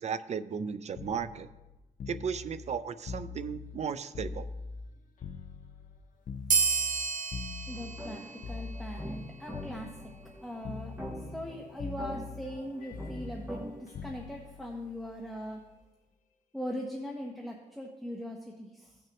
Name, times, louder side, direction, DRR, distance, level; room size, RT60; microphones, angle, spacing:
voice 1, 0.0-1.5 2.1-4.5, right 6 dB, 55° right, 13 dB, 0.4 m, -35 dB
sound 1, 1.0-4.9 5.2-9.2 9.5-10.4 10.6-11.5 11.8-15.8 17.0-17.2, left 4 dB, 85° left, 0.6 m, -43 dB
sound 2, 6.5-9.5, right 5 dB, 75° right, 0.8 m, -31 dB
voice 2, 7.7-9.9 10.4-11.0 11.3-15.6 16.5-19.0, equal, ahead, 0 dB, 0.9 m, -40 dB
sound 3, 7.7-13.7, equal, 15° right, 2.3 m, -44 dB
16.5 x 6.2 x 2.9 m, 1.1 s
wide cardioid pair, 150°, 13 cm